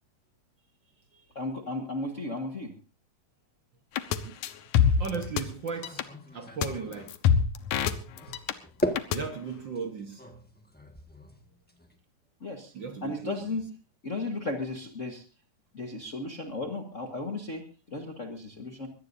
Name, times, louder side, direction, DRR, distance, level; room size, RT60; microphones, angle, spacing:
voice 1, 1.3-2.7 12.4-12.7 13.0-13.6 14.0-15.2 15.7-18.9, left 2 dB, 40° left, 1.1 m, -35 dB
sound 1, 4.0-4.2 4.4-5.4 5.7-6.0 6.6-6.7 6.9-8.5 8.8-9.2, left 7 dB, 90° left, 2.4 m, -24 dB
voice 2, 5.0-6.0 6.3-7.1 8.3-8.4 9.1-10.2 12.7-13.6, right 5 dB, 50° right, 1.6 m, -36 dB
sound 2, 5.7-7.3 8.1-12.0, equal, 10° left, 0.6 m, -38 dB
23.0 x 17.5 x 2.7 m
omnidirectional pair, 3.3 m